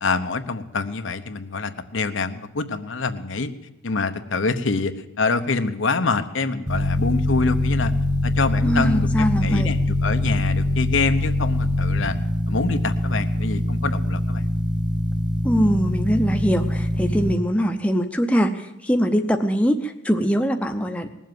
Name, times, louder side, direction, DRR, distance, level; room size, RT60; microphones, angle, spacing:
voice 1, 0.0-3.5 3.8-7.9 8.2-12.2 12.5-14.5, left 4 dB, 80° left, 8 dB, 0.9 m, -25 dB
sound 1, 6.7-17.3, left 1 dB, 20° right, 1.4 m, -23 dB
voice 2, 8.6-9.7 15.4-21.1, equal, 5° left, 5 dB, 0.7 m, -22 dB
19.5 x 7.4 x 9.3 m, 0.86 s
head